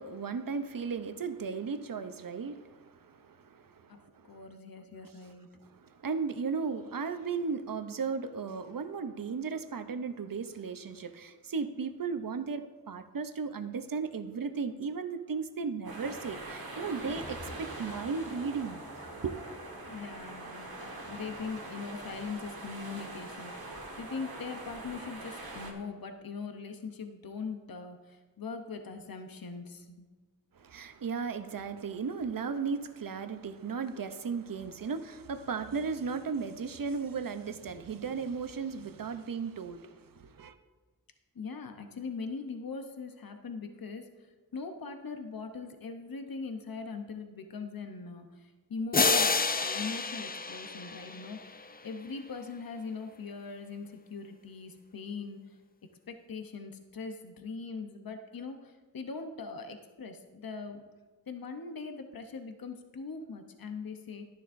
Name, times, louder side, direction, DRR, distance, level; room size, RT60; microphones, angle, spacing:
voice 1, 0.0-4.4 5.7-19.4 30.5-40.5, right 5 dB, 70° right, 10 dB, 0.7 m, -36 dB
voice 2, 4.3-5.5 19.9-30.1 41.3-55.6 56.1-60.8 61.3-64.2, left 4 dB, 75° left, 6 dB, 0.8 m, -41 dB
sound 1, 15.8-25.7, right 2 dB, 85° right, 1.5 m, -43 dB
sound 2, 16.7-20.8 21.1-21.2, equal, ahead, 2.3 m, -51 dB
sound 3, 48.9-51.6, left 4 dB, 25° left, 0.4 m, -29 dB
12.0 x 10.5 x 2.6 m, 1.3 s
wide cardioid pair, 65°, 36 cm